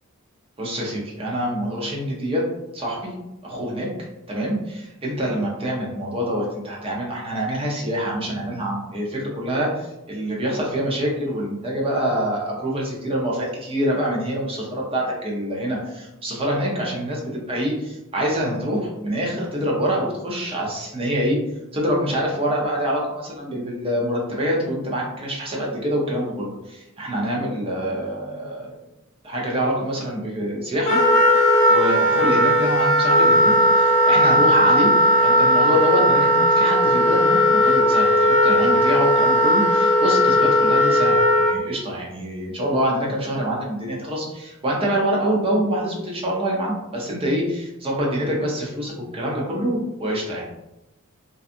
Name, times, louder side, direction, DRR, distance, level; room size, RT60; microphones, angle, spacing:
voice 1, 0.6-2.4 2.7-3.1 3.4-3.9 4.3-21.4 21.7-28.8 29.2-31.0 31.7-34.9 35.2-50.5, equal, 25° right, -3 dB, 0.6 m, -25 dB
Wind instrument woodwind instrument, 30.8-41.5, equal, 35° left, 0.5 m, -17 dB
2.7 x 2.3 x 2.5 m, 0.95 s
head